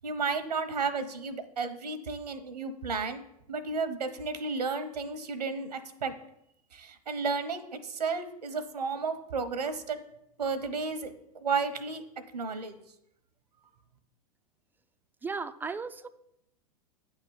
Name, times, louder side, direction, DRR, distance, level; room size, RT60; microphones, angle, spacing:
voice 1, 0.0-3.2 3.5-6.1 6.7-10.0 10.4-11.1 11.4-12.0 12.3-12.8, right 4 dB, 90° right, 11 dB, 0.9 m, -32 dB
voice 2, 15.2-16.1, right 4 dB, 10° right, 11 dB, 0.3 m, -35 dB
9.1 x 3.7 x 7.0 m, 0.79 s
hypercardioid pair, 100°, 20 cm